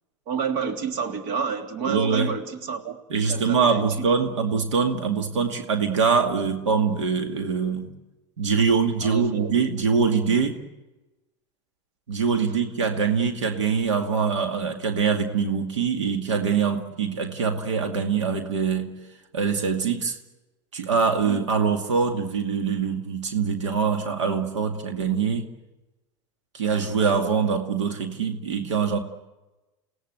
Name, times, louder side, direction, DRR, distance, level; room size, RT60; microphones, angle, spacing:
voice 1, 0.3-3.0 3.3-3.8 9.0-9.5, right 6 dB, 65° right, 6 dB, 3.3 m, -29 dB
voice 2, 1.8-2.3 3.1-7.9 8.4-10.6 12.1-18.9 19.3-20.2 20.7-25.5 26.5-29.0, right 5 dB, 85° right, 6 dB, 2.3 m, -24 dB
29.0 x 17.5 x 8.1 m, 1.1 s
hypercardioid pair, 85°, 15 cm